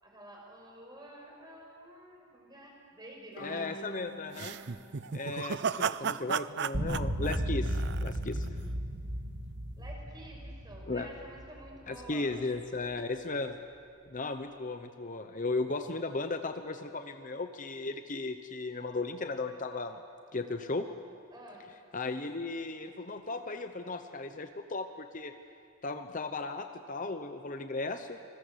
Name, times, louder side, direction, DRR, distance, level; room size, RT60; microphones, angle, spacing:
voice 1, 0.0-3.7 9.8-12.4 21.3-21.7, right 1 dB, 20° right, -1 dB, 5.9 m, -50 dB
Bowed string instrument, 3.4-6.7, left 1 dB, 70° left, 5.0 m, -48 dB
voice 2, 3.4-4.6 5.1-8.5 10.9-11.1 11.9-13.6 14.1-20.0 20.3-20.9 21.9-25.3 25.8-28.2, left 3 dB, 35° left, 8 dB, 0.8 m, -36 dB
sound 1, 4.3-8.5, right 7 dB, 55° right, 0.5 m, -34 dB
sound 2, 6.7-12.1, equal, 70° right, 2.5 m, -35 dB
28.0 x 21.0 x 8.1 m, 2.6 s
head